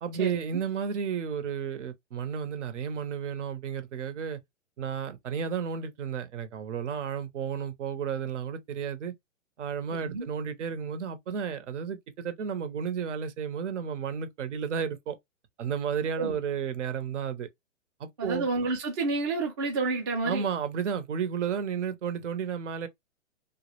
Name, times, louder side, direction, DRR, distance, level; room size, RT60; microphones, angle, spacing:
voice 1, 0.0-4.4 4.8-9.1 9.6-15.2 15.6-17.5 18.0-18.5 20.2-22.9, right 7 dB, 65° right, 0.7 m, -32 dB
voice 2, 18.2-20.4, right 3 dB, 20° right, 0.4 m, -29 dB
2.2 x 2.0 x 2.9 m
hypercardioid pair, 145°, 38 cm